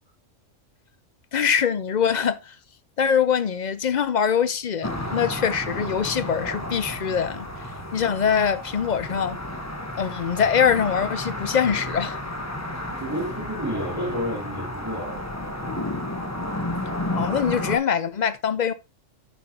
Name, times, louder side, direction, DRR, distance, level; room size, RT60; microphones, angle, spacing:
voice 1, 1.3-2.5 3.0-7.5 7.9-9.4 10.0-12.2 17.1-18.7, left 7 dB, 50° left, 0.6 m, -23 dB
sound 1, 4.8-17.8, left 1 dB, 15° left, 1.2 m, -32 dB
voice 2, 12.9-15.5, equal, 15° right, 3.5 m, -31 dB
9.2 x 7.9 x 2.9 m
omnidirectional pair, 1.3 m